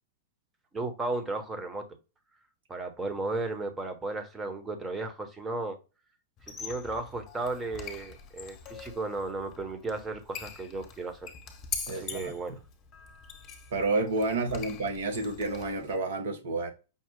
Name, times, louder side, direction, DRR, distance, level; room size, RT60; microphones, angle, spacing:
voice 1, 0.7-1.9 2.7-5.8 6.5-11.3 11.9-12.6, right 3 dB, 15° right, 1.1 m, -34 dB
Squeak, 6.4-16.0, left 6 dB, 30° left, 1.1 m, -43 dB
voice 2, 11.9-12.3 13.7-16.7, right 3 dB, 65° right, 1.2 m, -30 dB
5.5 x 2.3 x 3.8 m
figure-of-eight pair, 100°, 0 cm